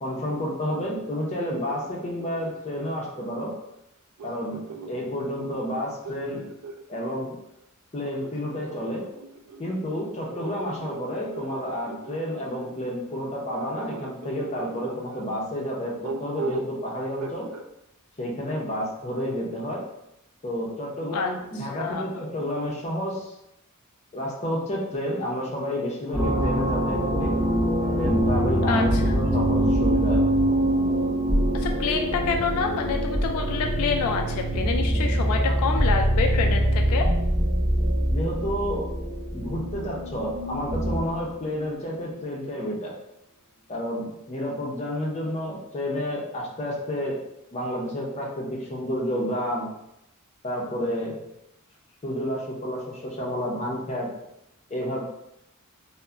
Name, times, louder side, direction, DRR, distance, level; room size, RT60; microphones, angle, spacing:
voice 1, 0.0-3.6 4.2-6.5 6.9-7.4 7.9-9.1 9.6-17.5 18.2-19.8 20.4-23.3 24.1-27.4 28.0-30.2 35.4-35.6 38.1-42.9 43.7-47.2 47.5-49.7 50.4-51.2 52.0-54.1 54.7-55.0, equal, 30° left, -2 dB, 0.6 m, -30 dB
sound 1, 1.0-3.4 4.2-7.2 8.0-12.8 13.5-15.3 16.0-16.8 17.2-17.7, right 3 dB, 80° right, 0.3 m, -39 dB
voice 2, 21.7-22.1 28.7-29.1 31.5-37.1, left 5 dB, 80° left, 5 dB, 0.3 m, -27 dB
sound 2, 26.1-41.2, right 1 dB, ahead, 0.9 m, -24 dB
2.2 x 2.1 x 3.7 m, 0.85 s
head